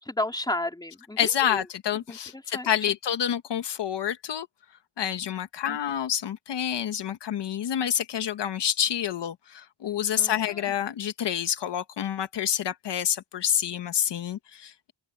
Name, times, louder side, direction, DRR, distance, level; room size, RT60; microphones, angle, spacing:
voice 1, 0.0-1.6 2.1-2.7 5.7-5.8 10.1-10.6, left 1 dB, 10° left, 3.1 m, -33 dB
voice 2, 1.2-4.5 5.0-14.9, left 9 dB, 65° left, 1.3 m, -28 dB
open air
cardioid pair, 110°, 45 cm